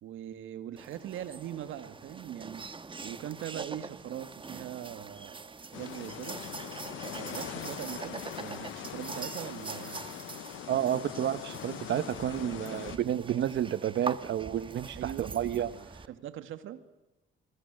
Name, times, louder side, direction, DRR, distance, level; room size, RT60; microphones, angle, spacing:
voice 1, 0.0-2.7 3.0-6.4 7.1-10.0 12.7-12.8 15.0-15.3 15.7-16.8, right 11 dB, 85° right, 11 dB, 2.2 m, -41 dB
sound 1, 0.8-16.1, right 4 dB, 25° right, 1.4 m, -43 dB
sound 2, 5.7-13.0, left 13 dB, 80° left, 0.9 m, -42 dB
voice 2, 10.7-16.1, right 10 dB, 65° right, 13 dB, 1.0 m, -31 dB
28.0 x 22.5 x 7.7 m, 1.0 s
cardioid pair, 90°, 20 cm